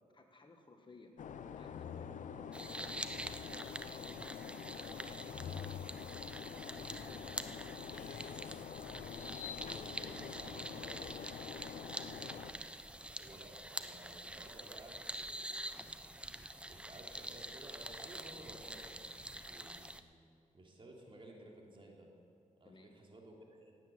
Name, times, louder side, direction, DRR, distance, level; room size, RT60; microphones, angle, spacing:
voice 1, 0.1-1.1 1.5-2.9 3.9-6.2 6.6-7.4 22.6-22.9, left 2 dB, 35° left, 4 dB, 1.8 m, -60 dB
sound 1, 1.2-12.5, left 7 dB, 70° left, 0.7 m, -46 dB
sound 2, 2.5-20.0, right 1 dB, 10° right, 0.8 m, -46 dB
voice 2, 9.6-12.6 13.2-15.8 16.7-19.9 20.5-22.1 22.6-23.7, right 1 dB, 40° right, 0 dB, 3.2 m, -55 dB
18.0 x 8.8 x 7.7 m, 2.5 s
cardioid pair, 75°, 14 cm